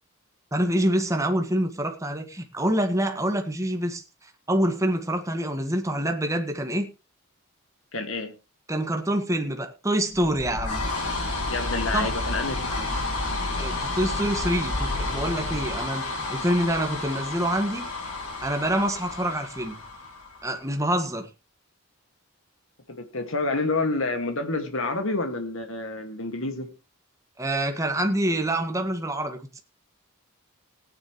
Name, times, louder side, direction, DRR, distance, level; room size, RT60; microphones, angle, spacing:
voice 1, 0.5-6.9 8.7-10.8 11.9-12.1 13.6-17.9 18.4-19.8 20.4-21.3 27.4-29.6, right 1 dB, 15° right, 1.6 m, -26 dB
voice 2, 7.9-8.3 11.5-12.8 23.0-26.7, left 3 dB, 65° left, 2.0 m, -28 dB
sound 1, 10.1-20.6, left 2 dB, 90° left, 6.0 m, -30 dB
18.5 x 9.7 x 3.1 m
head